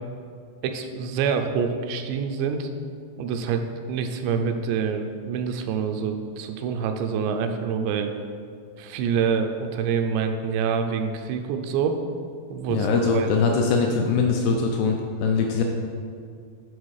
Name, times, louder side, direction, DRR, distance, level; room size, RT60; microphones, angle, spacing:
voice 1, 0.6-2.7 3.2-3.6 3.9-8.1 8.8-12.0 12.5-13.3, right 6 dB, 85° right, 6 dB, 2.7 m, -26 dB
voice 2, 12.7-15.6, left 4 dB, 80° left, 1 dB, 2.4 m, -22 dB
10.0 x 4.2 x 4.8 m, 2.3 s
omnidirectional pair, 5.1 m